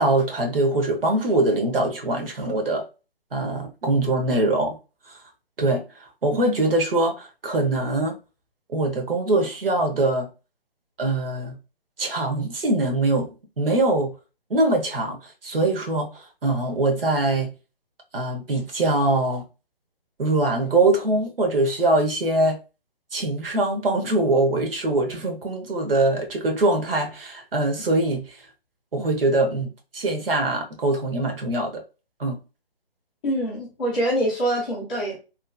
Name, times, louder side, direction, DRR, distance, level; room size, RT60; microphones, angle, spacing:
voice 1, 0.0-2.9 3.3-4.8 5.1-5.2 5.6-8.1 8.7-10.3 11.0-11.6 12.0-13.3 13.6-14.1 14.5-16.1 16.4-17.5 18.1-19.4 20.2-22.6 23.1-28.4 28.9-31.7 32.2-32.4, right 2 dB, 65° right, 1.1 m, -23 dB
voice 2, 33.2-35.2, right 1 dB, 10° left, 0.5 m, -24 dB
3.0 x 2.5 x 2.4 m
figure-of-eight pair, 140°, 30 cm